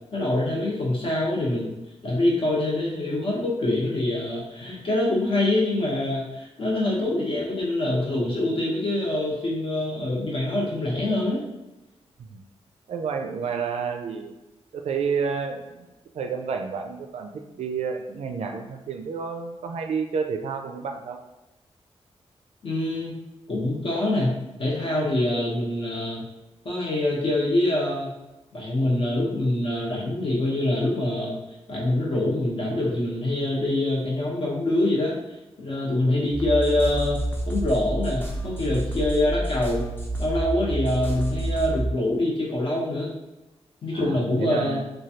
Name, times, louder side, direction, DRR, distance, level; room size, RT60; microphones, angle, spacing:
voice 1, 0.1-1.7 2.0-11.4 22.6-23.2 23.5-24.3 24.6-26.2 26.6-28.1 28.5-31.4 31.7-35.2 35.6-39.9 40.2-43.1 43.8-44.8, left 1 dB, 55° left, -4 dB, 0.9 m, -25 dB
voice 2, 12.9-14.3 14.7-15.9 16.1-21.2 43.9-44.9, right 5 dB, 80° right, 4 dB, 0.4 m, -30 dB
sound 1, 36.3-41.9, right 1 dB, 20° left, 0.6 m, -29 dB
3.1 x 2.3 x 2.8 m, 1.0 s
wide cardioid pair, 125°, 11 cm